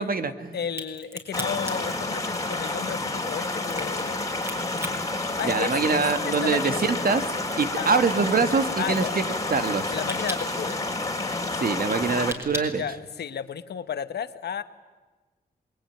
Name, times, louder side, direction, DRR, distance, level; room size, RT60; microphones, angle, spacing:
voice 1, 0.0-0.6 5.4-7.2 7.6-9.2 9.5-9.9 11.6-12.8, right 4 dB, 60° right, 9 dB, 1.9 m, -24 dB
voice 2, 0.5-4.2 5.4-6.8 7.8-7.9 8.8-9.2 9.9-10.8 12.7-14.6, left 8 dB, 75° left, 11 dB, 1.2 m, -33 dB
Crack, 0.6-6.1 6.5-13.5, equal, 15° right, 5.7 m, -39 dB
sound 1, 1.3-12.3, left 2 dB, 20° left, 3.2 m, -29 dB
27.5 x 21.5 x 9.4 m, 1.3 s
cardioid pair, 75°, 17 cm